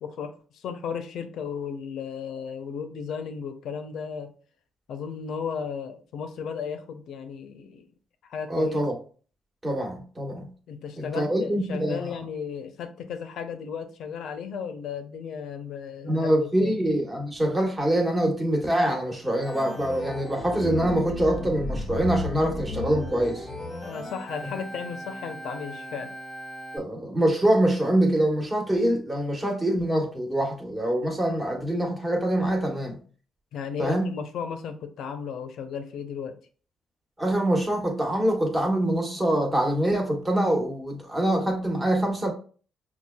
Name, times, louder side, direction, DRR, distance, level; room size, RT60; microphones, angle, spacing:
voice 1, 0.0-4.3 4.9-7.8 8.3-8.8 10.7-16.8 23.8-26.1 33.5-36.4, left 6 dB, 75° left, 0.6 m, -35 dB
voice 2, 8.5-8.9 9.6-10.5 11.0-12.1 16.0-23.5 26.7-33.0 33.8-34.1 37.2-42.3, right 1 dB, 20° right, 1.2 m, -24 dB
Organ, 19.4-26.8, left 1 dB, 15° left, 1.0 m, -35 dB
5.8 x 2.3 x 2.2 m
cardioid pair, 90°, 0 cm